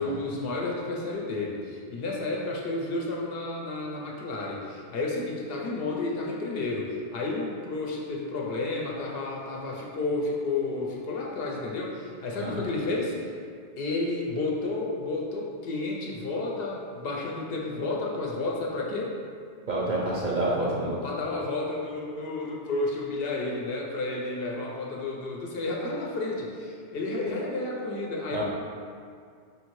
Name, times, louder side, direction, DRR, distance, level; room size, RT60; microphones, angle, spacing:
voice 1, 0.0-13.3 13.8-19.1 20.6-20.7 21.0-28.4, left 2 dB, 65° left, -2 dB, 0.7 m, -31 dB
voice 2, 12.4-12.7 19.7-21.0 28.3-28.4, right 2 dB, 55° right, -5 dB, 0.6 m, -28 dB
5.0 x 2.6 x 3.0 m, 2.2 s
omnidirectional pair, 1.2 m